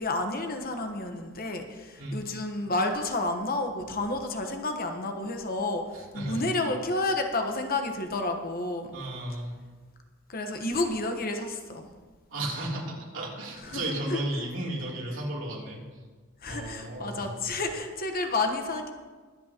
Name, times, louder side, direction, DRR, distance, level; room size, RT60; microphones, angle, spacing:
voice 1, 0.0-8.9 10.3-11.9 13.6-14.2 16.4-18.9, left 2 dB, 45° left, 5 dB, 1.1 m, -30 dB
voice 2, 5.9-6.5 8.9-9.5 12.3-15.8 16.5-17.3, right 1 dB, 70° right, -4 dB, 3.1 m, -34 dB
23.0 x 8.5 x 2.9 m, 1.4 s
head